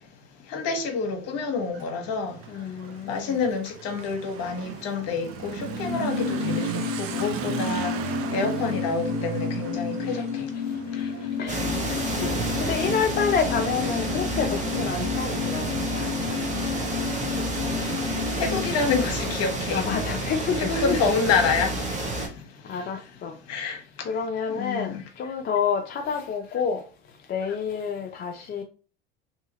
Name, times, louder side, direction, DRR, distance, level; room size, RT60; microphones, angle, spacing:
voice 1, 0.5-2.4 3.1-6.7 7.0-7.9 8.3-10.2 11.0-11.1 18.3-19.8 20.6-21.8 23.5-23.8 24.5-25.0, left 5 dB, 50° left, 1.1 m, -27 dB
Motorcycle / Accelerating revving vroom, 1.6-13.9, right 9 dB, 45° right, 0.6 m, -35 dB
voice 2, 2.5-3.4 10.0-10.4 10.9-11.0 11.4-16.4 19.7-21.0 21.9-22.2 22.7-23.4 24.0-26.8 27.3-28.6, left 6 dB, 30° left, 0.5 m, -29 dB
sound 1, 5.4-20.5 20.8-20.9, left 8 dB, 85° left, 0.5 m, -32 dB
sound 2, 11.5-22.3, right 2 dB, 25° right, 0.9 m, -30 dB
2.8 x 2.7 x 2.7 m
hypercardioid pair, 75°, 32 cm